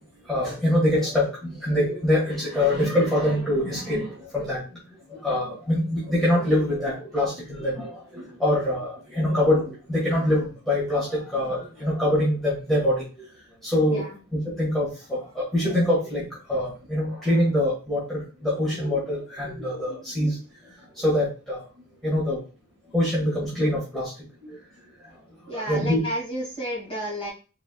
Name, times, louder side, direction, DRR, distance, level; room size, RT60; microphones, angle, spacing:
voice 1, 0.3-4.6 5.2-13.0 13.6-14.0 14.6-20.4 21.0-21.6 22.0-22.4 22.9-24.1 25.5-26.0, left 1 dB, ahead, -7 dB, 1.8 m, -24 dB
voice 2, 25.5-27.3, equal, 25° left, -3 dB, 2.6 m, -31 dB
4.5 x 4.1 x 2.4 m, 0.34 s
head